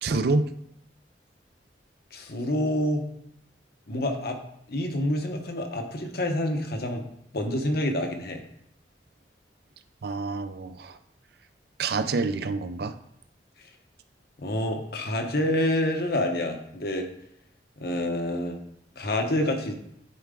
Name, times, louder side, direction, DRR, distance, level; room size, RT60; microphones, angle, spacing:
voice 1, 0.0-0.5 10.0-11.0 11.8-13.0, right 3 dB, 60° right, 11 dB, 0.4 m, -27 dB
voice 2, 2.1-3.0 3.9-4.4 4.7-7.0 7.3-8.4 14.4-17.1 17.8-18.6 19.0-19.7, left 1 dB, 60° left, 4 dB, 1.0 m, -27 dB
10.5 x 4.6 x 3.7 m, 0.74 s
head